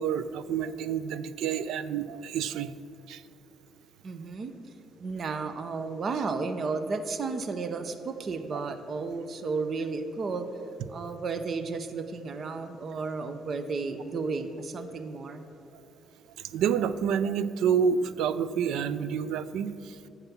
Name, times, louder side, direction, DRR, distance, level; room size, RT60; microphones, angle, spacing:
voice 1, 0.0-2.7 3.1-3.2 16.4-19.9, right 7 dB, 90° right, 15 dB, 0.4 m, -28 dB
voice 2, 4.0-4.5 5.0-10.5 10.9-15.4, right 4 dB, 45° right, 9 dB, 0.7 m, -33 dB
9.4 x 7.1 x 7.0 m, 2.6 s
cardioid pair, 125°, 0 cm